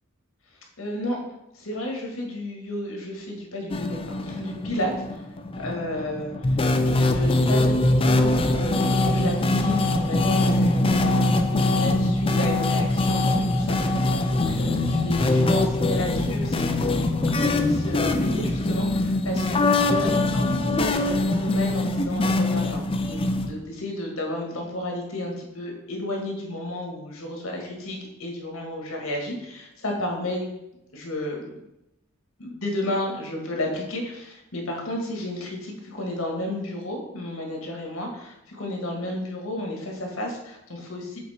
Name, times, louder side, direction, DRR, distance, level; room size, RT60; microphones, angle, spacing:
voice 1, 0.8-1.2 1.5-5.2 5.6-16.8 17.1-30.4 30.9-31.5 32.4-41.2, left 1 dB, 75° left, 1 dB, 1.7 m, -32 dB
sound 1, 3.7-23.5, left 2 dB, 25° left, 0.5 m, -23 dB
7.0 x 4.2 x 4.3 m, 0.88 s
head